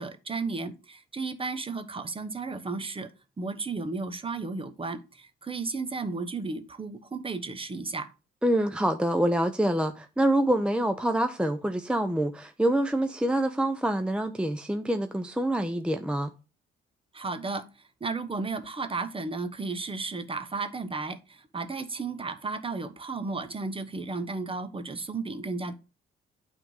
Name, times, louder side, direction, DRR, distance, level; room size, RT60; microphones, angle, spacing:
voice 1, 0.0-3.1 3.4-8.1 17.1-25.7, right 3 dB, 25° right, 1.1 m, -34 dB
voice 2, 8.4-16.3, right 1 dB, 5° right, 0.6 m, -26 dB
9.1 x 3.7 x 5.5 m
cardioid pair, 90°, 20 cm